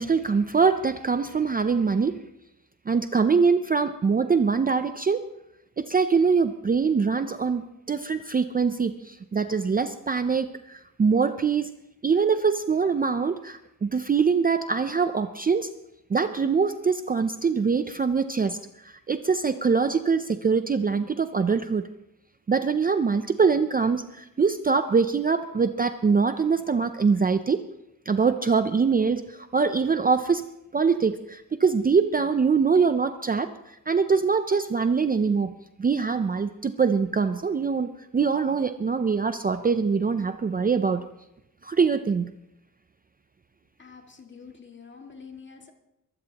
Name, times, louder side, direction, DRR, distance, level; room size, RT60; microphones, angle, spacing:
voice 1, 0.0-2.2 2.9-5.3 5.8-11.7 12.0-15.7 16.1-21.8 22.5-27.6 28.1-35.5 35.8-41.1 41.6-42.3, right 5 dB, 25° right, 10 dB, 0.5 m, -23 dB
voice 2, 43.8-45.7, left 5 dB, 30° left, 3 dB, 2.0 m, -46 dB
22.0 x 14.5 x 2.9 m, 0.87 s
wide cardioid pair, 125°, 36 cm